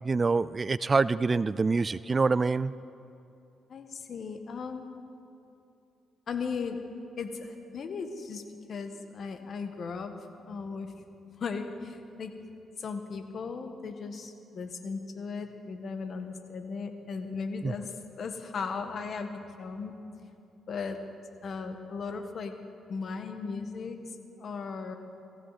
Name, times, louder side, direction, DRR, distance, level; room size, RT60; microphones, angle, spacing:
voice 1, 0.0-2.7 17.6-17.7, right 4 dB, 35° right, 18 dB, 0.3 m, -26 dB
voice 2, 3.7-4.9 6.3-6.8 7.2-8.4 8.7-10.1 10.4-10.9 11.4-12.3 12.8-17.8 18.2-19.9 20.7-21.0 21.4-22.5 22.9-24.0 24.4-24.9, left 5 dB, 55° left, 7 dB, 1.4 m, -37 dB
18.0 x 15.5 x 4.1 m, 2.7 s
supercardioid pair, 65°, 0 cm